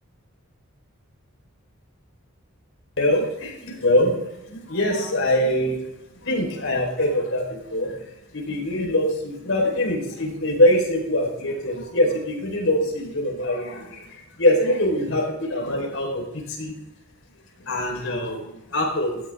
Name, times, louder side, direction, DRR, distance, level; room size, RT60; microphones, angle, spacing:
voice 1, 3.0-5.8 6.2-8.0 8.3-16.7 17.6-19.2, left 1 dB, 65° left, 0 dB, 4.6 m, -23 dB
17.0 x 14.0 x 3.7 m, 0.92 s
head